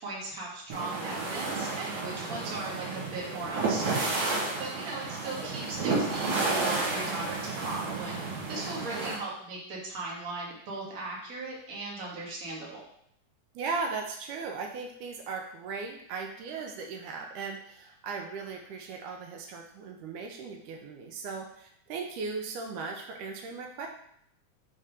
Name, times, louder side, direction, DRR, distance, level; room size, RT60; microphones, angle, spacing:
voice 1, 0.0-4.2 4.6-8.2 8.5-12.8, right 2 dB, 40° right, -3 dB, 1.3 m, -38 dB
sound 1, 0.7-9.2, right 3 dB, 60° right, 2.1 m, -31 dB
voice 2, 8.5-9.2 13.6-23.9, right 4 dB, 80° right, 3 dB, 2.2 m, -37 dB
5.1 x 4.3 x 5.1 m, 0.71 s
omnidirectional pair, 3.7 m